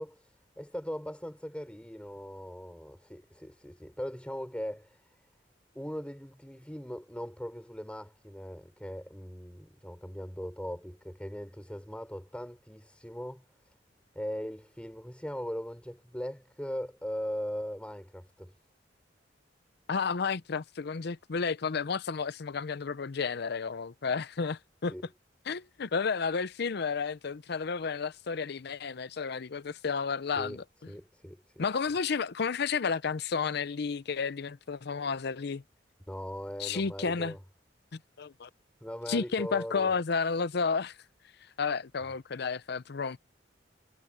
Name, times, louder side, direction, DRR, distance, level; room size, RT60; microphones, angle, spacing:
voice 1, 0.0-5.0 5.7-13.4 14.1-18.5 24.9-25.1 30.4-30.6 30.9-31.6 36.1-37.4 38.8-39.9, equal, 5° left, 5.2 m, -39 dB
voice 2, 19.9-24.9 25.5-30.6 31.6-35.6 36.6-37.4 37.9-38.5 39.1-41.0 41.6-43.2, left 5 dB, 60° left, 0.6 m, -32 dB
head